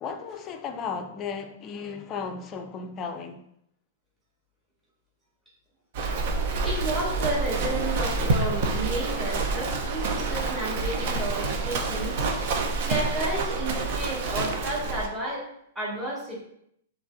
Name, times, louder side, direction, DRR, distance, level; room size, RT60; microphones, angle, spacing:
voice 1, 0.0-3.4, left 5 dB, 25° left, 0.5 m, -35 dB
Livestock farm animals working animals, 5.9-15.1, right 3 dB, 50° right, 0.8 m, -28 dB
voice 2, 6.6-12.3 12.8-15.4 15.8-16.4, right 1 dB, 10° right, 1.8 m, -32 dB
5.9 x 3.3 x 2.7 m
hypercardioid pair, 145°, 0 cm